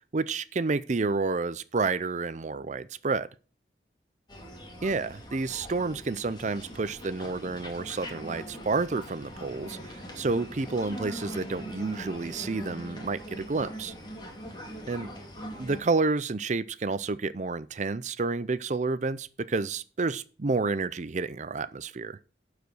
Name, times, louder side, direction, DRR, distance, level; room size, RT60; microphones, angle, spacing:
voice 1, 0.1-3.3 4.8-13.9 14.9-15.1 15.6-22.2, right 3 dB, 45° right, 0.5 m, -30 dB
sound 1, 4.3-15.8, equal, 25° left, 2.2 m, -42 dB
12.0 x 5.0 x 6.2 m
head